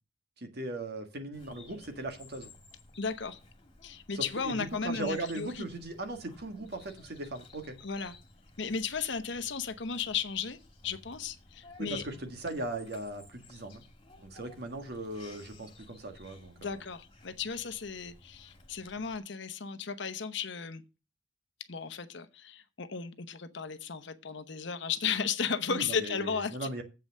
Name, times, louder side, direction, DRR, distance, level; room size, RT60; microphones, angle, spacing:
voice 1, 0.4-2.5 4.1-7.7 11.8-13.8 14.3-16.8 25.7-26.8, right 2 dB, 55° right, 1.6 m, -38 dB
Bird vocalization bird call bird song, 1.3-19.2, left 2 dB, 25° left, 2.1 m, -56 dB
voice 2, 3.0-3.4 3.8-5.7 7.8-8.2 8.6-12.0 16.6-20.8 21.7-26.7, left 6 dB, 60° left, 0.9 m, -35 dB
7.8 x 5.4 x 7.5 m
head